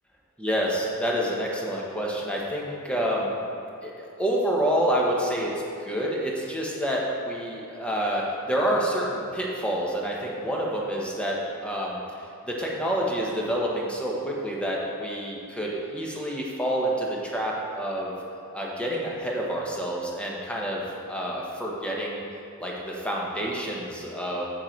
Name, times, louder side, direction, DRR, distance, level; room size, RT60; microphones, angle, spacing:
voice 1, 0.4-3.4 3.8-12.0 12.4-18.1 18.5-20.8 21.1-22.2 22.6-24.5, equal, 5° left, -3 dB, 1.2 m, -28 dB
7.7 x 7.3 x 4.6 m, 2.5 s
head